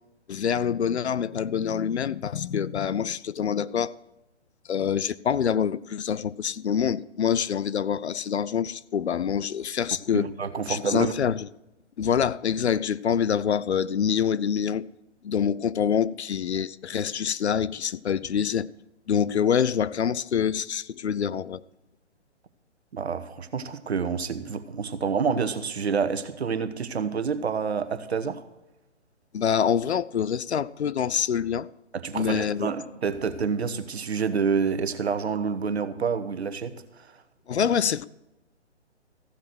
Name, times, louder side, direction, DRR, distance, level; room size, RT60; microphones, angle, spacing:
voice 1, 0.3-3.9 4.7-10.3 10.7-11.5 12.0-14.9 15.2-18.7 19.1-21.6 29.3-31.7 32.1-32.7 37.5-38.0, left 8 dB, 65° left, 0.6 m, -26 dB
voice 2, 10.1-11.1 22.9-28.4 31.9-37.1, right 6 dB, 65° right, 1.3 m, -28 dB
14.5 x 7.6 x 6.1 m
figure-of-eight pair, 140°, 35 cm